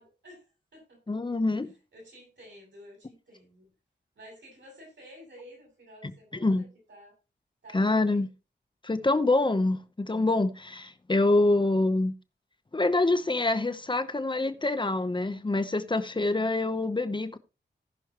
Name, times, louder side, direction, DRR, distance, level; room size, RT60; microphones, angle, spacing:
voice 1, 0.0-1.2 1.6-3.7 4.2-7.1 7.6-8.3 11.7-12.0, equal, 85° right, 7.3 m, -52 dB
voice 2, 1.1-1.7 6.4-6.6 7.7-8.3 8.8-12.1 12.7-17.4, left 2 dB, 25° left, 0.9 m, -26 dB
18.5 x 6.3 x 3.0 m
wide cardioid pair, 105°, 18 cm